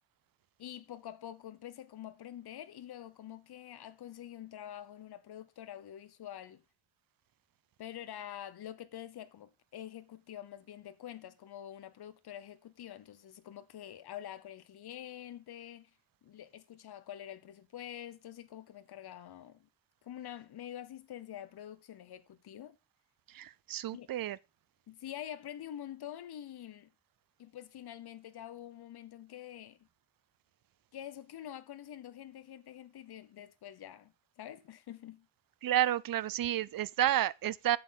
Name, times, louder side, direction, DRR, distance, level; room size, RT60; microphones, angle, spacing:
voice 1, 0.6-6.6 7.8-15.9 16.2-19.7 20.0-22.8 23.9-24.1 24.9-26.9 27.4-29.9 30.9-35.3, left 11 dB, 55° left, 0.9 m, -46 dB
voice 2, 23.3-24.4 35.6-37.8, right 12 dB, 50° right, 0.5 m, -30 dB
8.5 x 7.8 x 4.0 m
wide cardioid pair, 175°, 47 cm